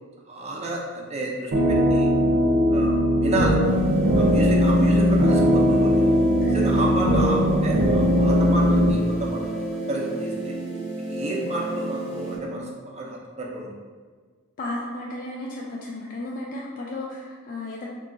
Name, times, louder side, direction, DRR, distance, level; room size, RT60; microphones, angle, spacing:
voice 1, 0.3-2.1 2.7-3.6 4.2-6.0 6.5-10.5 11.1-13.7, right 1 dB, 30° right, -2 dB, 0.5 m, -30 dB
sound 1, 1.5-8.9, equal, 85° right, 0.6 m, -19 dB
sound 2, 3.6-12.4, equal, 10° left, 0.9 m, -30 dB
voice 2, 14.6-17.9, left 2 dB, 40° left, -3 dB, 0.3 m, -34 dB
2.9 x 2.4 x 3.6 m, 1.5 s
head